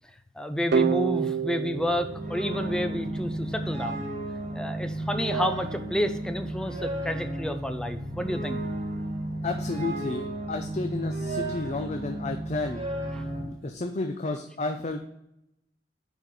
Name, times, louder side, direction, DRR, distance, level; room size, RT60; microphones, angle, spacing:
voice 1, 0.4-4.1 4.5-8.6 13.2-13.3, equal, 5° left, 7 dB, 0.7 m, -30 dB
sound 1, 0.7-3.5, right 7 dB, 65° right, 0.4 m, -29 dB
sound 2, 1.6-13.4, right 1 dB, 45° right, 2.6 m, -33 dB
voice 2, 9.4-12.8 13.4-15.0, left 3 dB, 40° left, 5 dB, 0.6 m, -32 dB
9.7 x 4.6 x 3.8 m, 0.84 s
head